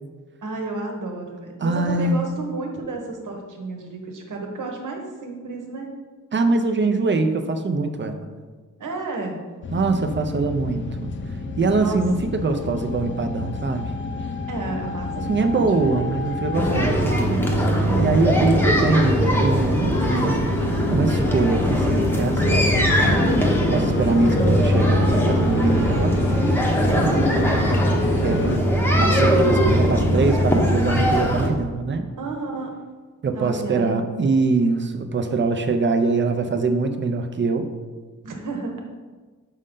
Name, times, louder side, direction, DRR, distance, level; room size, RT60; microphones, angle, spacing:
voice 1, 0.4-5.9 8.8-9.4 11.8-12.4 14.5-16.2 16.5-18.2 23.0-23.6 26.8-27.6 32.2-32.7 33.3-34.2 38.2-38.8, right 3 dB, 70° right, 2 dB, 1.1 m, -31 dB
voice 2, 1.6-2.4 6.3-8.3 9.7-11.0 11.6-13.9 15.3-17.2 18.0-20.4 20.9-22.7 23.6-26.2 28.2-28.5 29.0-32.0 33.2-37.7, right 3 dB, 35° right, 7 dB, 0.5 m, -23 dB
sound 1, 9.6-28.6, left 3 dB, 40° left, 0.5 m, -29 dB
sound 2, 16.5-31.5, equal, 5° left, 0.7 m, -20 dB
6.5 x 5.4 x 3.7 m, 1.4 s
wide cardioid pair, 180°, 32 cm